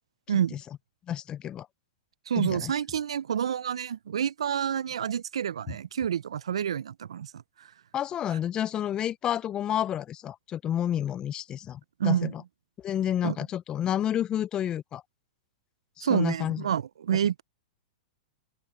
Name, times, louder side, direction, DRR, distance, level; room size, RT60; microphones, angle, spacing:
voice 1, 0.3-0.6 2.3-7.7 12.0-12.3 13.2-13.4 16.0-17.4, right 9 dB, 75° right, 0.9 m, -28 dB
voice 2, 1.1-1.7 2.4-2.7 7.9-12.4 12.8-15.0 16.0-16.7, left 10 dB, 25° left, 0.6 m, -30 dB
open air
hypercardioid pair, 110°, 3 cm